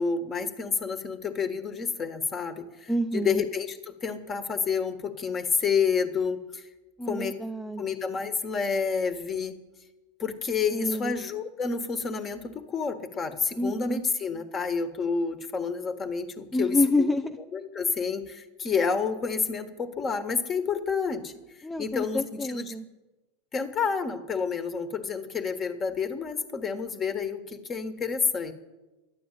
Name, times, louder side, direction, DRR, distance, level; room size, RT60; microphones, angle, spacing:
voice 1, 0.0-6.6 7.1-7.3 7.8-9.6 10.2-17.1 17.5-21.3 21.8-22.2 22.5-22.8 23.5-28.5, left 5 dB, 30° left, 9 dB, 1.5 m, -29 dB
voice 2, 2.9-3.4 7.0-7.8 10.7-11.2 13.6-14.0 16.5-17.4 21.6-22.9, left 1 dB, 10° left, 4 dB, 0.7 m, -28 dB
11.5 x 9.2 x 9.2 m, 1.1 s
hypercardioid pair, 105°, 0 cm